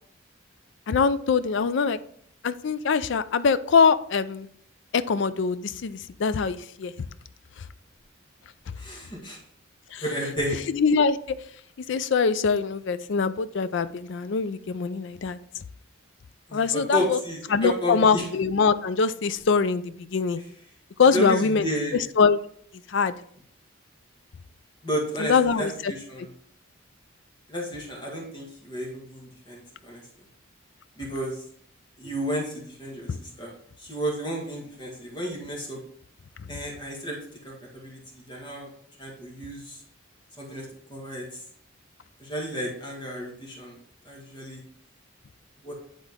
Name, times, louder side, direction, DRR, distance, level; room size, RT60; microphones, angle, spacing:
voice 1, 0.9-2.0 2.4-4.5 4.9-6.9 9.9-10.0 10.7-11.2 11.9-15.4 16.5-17.2 17.5-20.4 21.0-21.7 21.9-22.4 22.9-23.1 25.2-25.9 33.1-33.2, left 5 dB, 60° left, 14 dB, 0.4 m, -23 dB
voice 2, 8.8-9.4 10.0-10.6 16.5-18.3 21.0-21.9 24.8-26.3 27.5-30.0 31.0-31.4 32.0-33.5 33.8-35.8 36.5-37.2 37.4-38.7 39.0-39.8 40.4-41.4 42.2-43.8 44.0-44.6 45.6-45.7, equal, 20° left, -2 dB, 1.6 m, -32 dB
9.9 x 3.8 x 3.5 m, 0.63 s
head